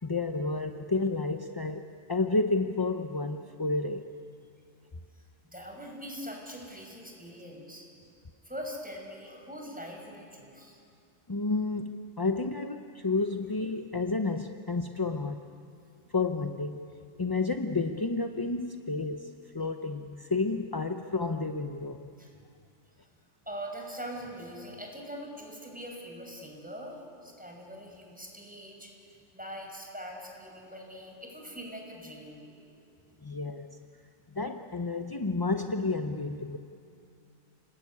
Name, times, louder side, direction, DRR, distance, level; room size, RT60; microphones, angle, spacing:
voice 1, 0.0-4.1 11.3-15.4 16.1-22.1 33.2-33.8 34.3-36.6, left 3 dB, 25° left, 6 dB, 0.6 m, -31 dB
voice 2, 5.5-7.8 8.4-10.8 22.2-22.3 23.5-32.6, equal, 5° right, 0 dB, 5.8 m, -42 dB
30.0 x 20.5 x 9.6 m, 2.6 s
omnidirectional pair, 1.4 m